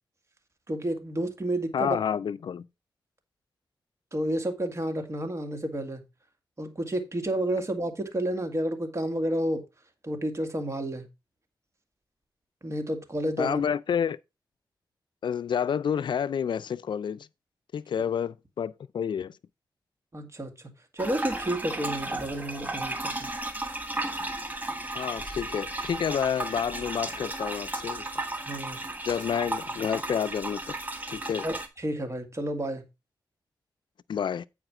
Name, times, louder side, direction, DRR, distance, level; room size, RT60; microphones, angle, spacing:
voice 1, 0.7-2.0 4.1-6.0 6.6-9.6 10.0-11.1 12.6-13.6 20.1-20.5 20.9-22.9 28.5-28.8 31.4-32.8, right 1 dB, 35° right, 2.0 m, -30 dB
voice 2, 1.7-2.7 13.4-14.2 15.2-17.3 17.7-19.4 25.0-28.1 29.0-30.8 31.1-31.5 34.1-34.5, left 8 dB, 75° left, 0.3 m, -29 dB
sound 1, 21.0-31.7, right 2 dB, 20° right, 1.6 m, -34 dB
9.0 x 4.9 x 4.8 m
cardioid pair, 65°, 8 cm